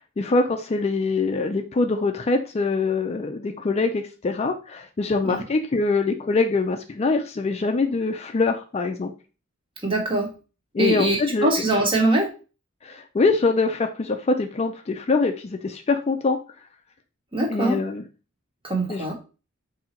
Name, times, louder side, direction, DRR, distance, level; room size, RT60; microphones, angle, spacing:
voice 1, 0.2-9.1 10.7-11.5 12.8-16.4 17.5-18.0 18.9-19.1, left 3 dB, 30° left, 5 dB, 0.4 m, -24 dB
voice 2, 9.8-10.3 10.8-12.3 17.3-17.8 18.6-19.1, right 1 dB, 25° right, 0 dB, 1.2 m, -22 dB
3.8 x 2.7 x 4.3 m, 0.33 s
head